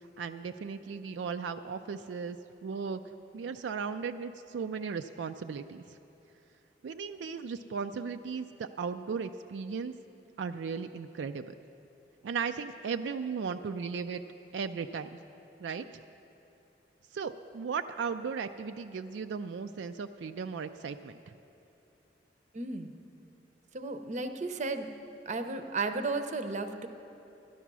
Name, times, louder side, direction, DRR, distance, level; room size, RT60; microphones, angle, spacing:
voice 1, 0.0-2.4 2.6-3.0 3.3-6.0 6.8-9.9 10.4-11.5 12.2-14.2 14.5-15.2 15.6-15.8 17.1-21.2, right 5 dB, 85° right, 8 dB, 0.4 m, -36 dB
voice 2, 22.5-23.0 23.7-24.9 25.3-26.9, right 3 dB, 40° right, 8 dB, 0.7 m, -34 dB
13.0 x 10.0 x 6.1 m, 2.8 s
head